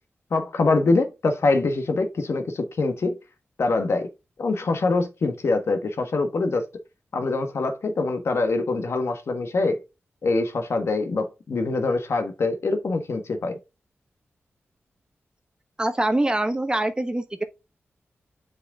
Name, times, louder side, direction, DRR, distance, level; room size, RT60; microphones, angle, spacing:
voice 1, 0.3-3.2 3.6-4.1 4.4-6.6 7.1-9.8 10.2-13.6, left 3 dB, 70° left, 1.3 m, -24 dB
voice 2, 15.8-17.4, right 1 dB, 20° right, 1.0 m, -24 dB
7.5 x 5.0 x 3.5 m
wide cardioid pair, 85°, 5 cm